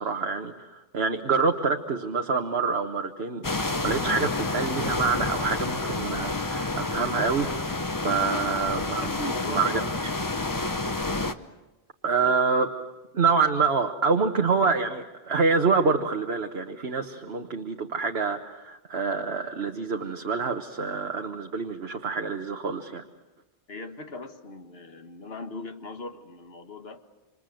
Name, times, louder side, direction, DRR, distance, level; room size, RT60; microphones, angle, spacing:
voice 1, 0.0-7.5 8.0-9.1 9.5-10.1 12.0-12.7 13.1-23.0, right 4 dB, 75° right, 4 dB, 1.5 m, -26 dB
sound 1, 3.4-11.3, left 2 dB, 20° left, 0.9 m, -29 dB
voice 2, 9.0-10.2 12.2-12.3 23.7-27.0, left 2 dB, 75° left, 6 dB, 1.9 m, -39 dB
28.0 x 26.5 x 7.7 m, 1.1 s
omnidirectional pair, 1.1 m